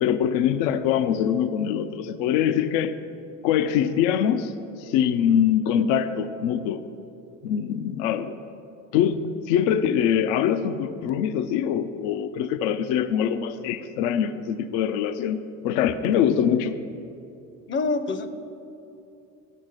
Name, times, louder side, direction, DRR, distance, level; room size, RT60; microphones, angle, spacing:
voice 1, 0.0-3.0 3.4-6.8 7.4-8.4 8.9-15.4 15.6-16.8, left 9 dB, 75° left, 11 dB, 0.5 m, -23 dB
voice 2, 17.7-18.3, left 3 dB, 30° left, 11 dB, 0.6 m, -25 dB
7.8 x 6.5 x 6.3 m, 2.8 s
supercardioid pair, 85°, 38 cm